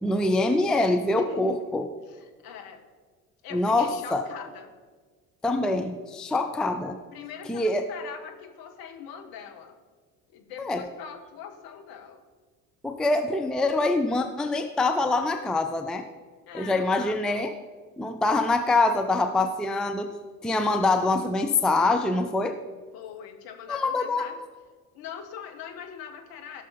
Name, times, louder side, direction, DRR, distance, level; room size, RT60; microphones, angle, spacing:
voice 1, 0.0-1.8 3.5-4.2 5.4-7.0 7.5-7.8 10.6-10.8 12.8-16.0 16.5-17.5 18.0-20.1 20.4-22.6 23.7-24.3, left 2 dB, ahead, 6 dB, 0.5 m, -24 dB
voice 2, 1.1-1.6 2.0-2.8 3.4-4.7 7.1-9.8 10.3-12.2 16.5-17.4 22.9-24.4 24.9-26.6, left 7 dB, 50° left, 4 dB, 1.4 m, -42 dB
17.0 x 6.1 x 4.3 m, 1.5 s
figure-of-eight pair, 55°, 45 cm